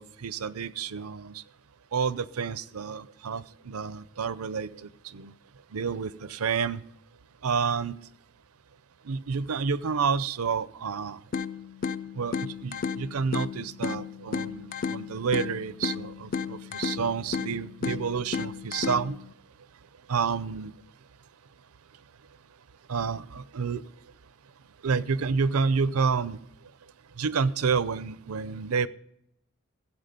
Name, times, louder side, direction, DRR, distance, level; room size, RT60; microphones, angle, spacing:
voice 1, 0.0-1.4 1.9-4.7 5.1-5.3 5.7-6.8 7.4-8.0 9.1-11.2 12.2-19.2 20.1-20.7 22.9-23.8 24.8-26.4 27.2-28.9, right 5 dB, 80° right, 17 dB, 0.6 m, -29 dB
sound 1, 11.3-19.3, left 5 dB, 40° left, 0.4 m, -34 dB
15.5 x 8.2 x 5.3 m, 0.77 s
head